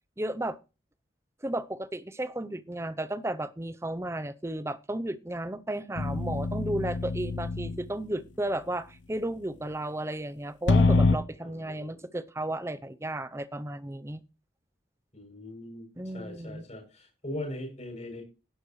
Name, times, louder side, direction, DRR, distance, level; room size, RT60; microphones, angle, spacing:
voice 1, 0.2-0.6 1.4-14.2 16.0-16.7, right 1 dB, 15° right, 13 dB, 0.7 m, -34 dB
sound 1, 6.0-7.9 10.7-11.2, left 3 dB, 75° left, 0.8 m, -25 dB
voice 2, 11.4-11.9 15.1-18.2, left 1 dB, 35° left, 2 dB, 7.8 m, -40 dB
18.0 x 11.0 x 3.2 m, 0.32 s
head